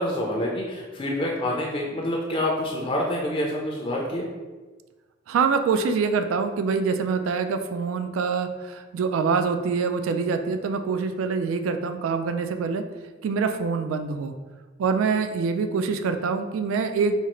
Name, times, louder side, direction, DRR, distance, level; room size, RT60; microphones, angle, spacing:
voice 1, 0.0-4.3, left 1 dB, 30° left, -1 dB, 0.4 m, -27 dB
voice 2, 5.3-12.8 13.2-14.3 14.8-17.1, right 5 dB, 85° right, 7 dB, 0.3 m, -25 dB
4.3 x 2.3 x 2.9 m, 1.3 s
head